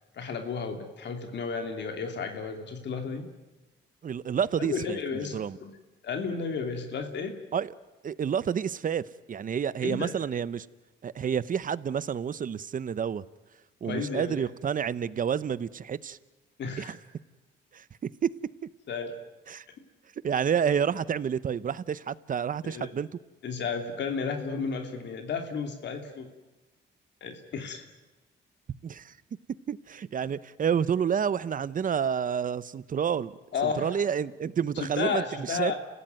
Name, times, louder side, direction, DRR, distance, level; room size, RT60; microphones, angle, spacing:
voice 1, 0.2-3.3 4.7-5.7 6.0-7.3 9.8-10.1 13.8-14.3 16.6-16.9 18.9-19.1 22.6-22.9 23.4-26.3 27.2-27.8 33.5-33.9 34.8-35.7, left 5 dB, 60° left, 5 dB, 2.8 m, -32 dB
voice 2, 4.0-5.0 5.3-5.6 7.5-7.7 8.0-10.7 11.0-13.2 13.8-16.2 16.8-17.0 17.7-17.8 18.2-18.3 19.5-19.6 20.2-23.1 28.8-29.1 29.7-33.3 33.6-35.7, right 7 dB, 45° right, 17 dB, 0.9 m, -29 dB
30.0 x 15.5 x 9.4 m, 1.1 s
cardioid pair, 90°, 20 cm